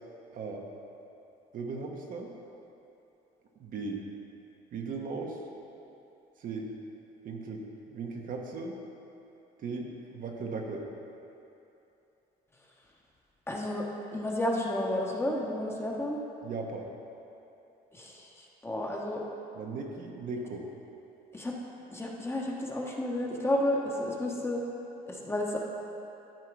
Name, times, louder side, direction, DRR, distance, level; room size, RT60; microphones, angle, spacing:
voice 1, 1.5-2.3 3.6-4.0 4.7-5.4 6.4-6.7 7.2-8.8 9.6-10.9 16.4-16.8 19.5-20.7, right 4 dB, 55° right, 0 dB, 1.1 m, -37 dB
voice 2, 13.5-13.9 14.1-16.2 17.9-19.2 21.3-21.5 21.9-24.6 25.1-25.6, left 1 dB, 15° left, -2 dB, 1.1 m, -31 dB
12.0 x 4.7 x 4.8 m, 2.9 s
cardioid pair, 110°, 17 cm